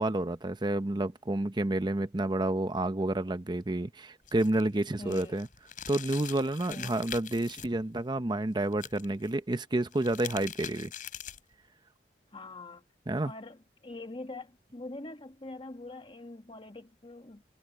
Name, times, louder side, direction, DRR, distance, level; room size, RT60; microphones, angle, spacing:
voice 1, 0.0-5.5 5.9-10.9 13.1-13.3, right 1 dB, 25° right, 0.7 m, -30 dB
sound 1, 4.2-7.7 8.7-9.3 9.8-11.5, left 9 dB, 50° left, 4.3 m, -43 dB
voice 2, 5.0-5.4 6.7-6.9 12.3-12.8 13.2-17.4, left 2 dB, 30° left, 1.5 m, -44 dB
head